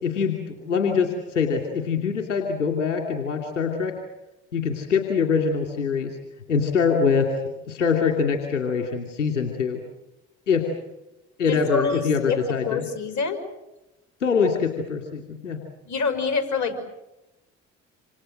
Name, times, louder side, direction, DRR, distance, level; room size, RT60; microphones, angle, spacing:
voice 1, 0.0-3.9 4.5-6.2 6.5-7.3 7.7-9.8 10.5-10.7 11.4-12.9 14.2-15.6, left 5 dB, 85° left, 3 dB, 2.7 m, -24 dB
voice 2, 11.5-13.4 15.9-16.8, left 5 dB, 55° left, 10 dB, 5.6 m, -26 dB
27.5 x 27.0 x 6.5 m, 0.94 s
hypercardioid pair, 50°, 35 cm